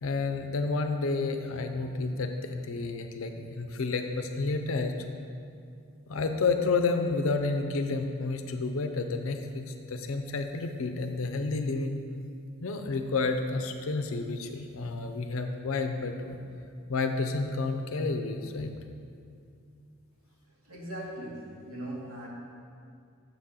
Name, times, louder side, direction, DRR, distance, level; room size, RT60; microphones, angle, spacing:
voice 1, 0.0-4.9 6.1-12.0 12.6-16.4 16.9-18.7, left 3 dB, 70° left, 6 dB, 0.5 m, -30 dB
voice 2, 20.7-22.3, right 1 dB, 90° right, -3 dB, 1.4 m, -39 dB
7.3 x 5.8 x 3.7 m, 2.3 s
head